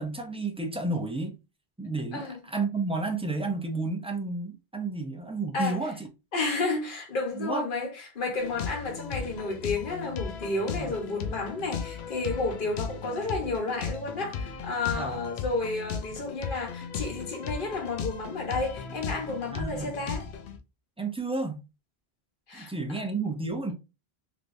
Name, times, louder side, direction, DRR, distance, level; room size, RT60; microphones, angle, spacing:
voice 1, 0.0-1.3 1.8-6.0 7.4-7.7 10.7-10.9 14.9-15.1 19.5-19.9 21.0-21.6 22.5-23.7, right 3 dB, 10° right, 0.3 m, -31 dB
voice 2, 6.3-20.3 22.5-22.7, left 3 dB, 55° left, 1.2 m, -31 dB
sound 1, 8.4-20.6, left 6 dB, 85° left, 0.8 m, -36 dB
3.3 x 2.9 x 2.6 m
omnidirectional pair, 1.1 m